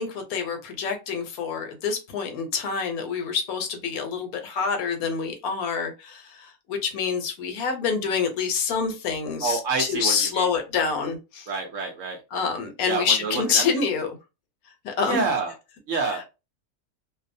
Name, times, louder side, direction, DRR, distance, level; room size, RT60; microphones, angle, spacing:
voice 1, 0.0-11.5 12.3-14.1 14.8-15.3 16.0-16.2, left 5 dB, 75° left, 1.1 m, -27 dB
voice 2, 9.4-10.5 11.5-12.2 12.8-13.6 15.0-15.5 15.9-16.2, right 4 dB, 65° right, 0.9 m, -27 dB
2.7 x 2.0 x 2.5 m
omnidirectional pair, 1.6 m